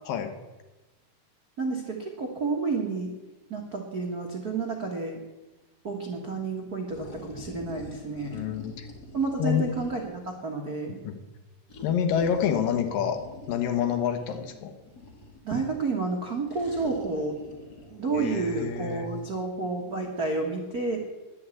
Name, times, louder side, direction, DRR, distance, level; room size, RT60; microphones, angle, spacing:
voice 1, 1.6-3.1 3.5-5.2 5.8-8.4 9.1-11.0 15.4-17.4 17.9-21.0, right 3 dB, 80° right, 1 dB, 0.8 m, -30 dB
sound 1, 6.9-10.3 11.7-15.5 16.5-19.4, left 2 dB, 35° left, 1.7 m, -45 dB
voice 2, 8.3-8.9 9.4-9.7 11.0-11.2 11.8-13.2 13.5-14.7 18.1-19.1, left 8 dB, 70° left, 7 dB, 2.7 m, -27 dB
11.0 x 9.5 x 8.3 m, 1.1 s
omnidirectional pair, 4.3 m